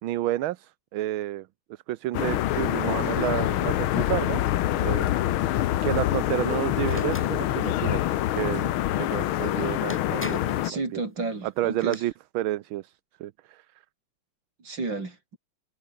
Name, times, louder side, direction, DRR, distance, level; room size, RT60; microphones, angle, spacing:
voice 1, 0.0-4.4 4.8-5.1 5.8-8.0 8.3-11.0 11.4-12.9 13.2-13.6, right 14 dB, 75° right, 1.5 m, -30 dB
sound 1, 2.1-10.7, left 14 dB, 80° left, 1.6 m, -26 dB
sound 2, 6.8-7.3 9.4-9.5 9.9-10.6 11.6-12.0, equal, 5° left, 3.6 m, -40 dB
voice 2, 10.6-12.0 14.6-15.4, right 3 dB, 55° right, 5.4 m, -32 dB
omnidirectional pair, 2.4 m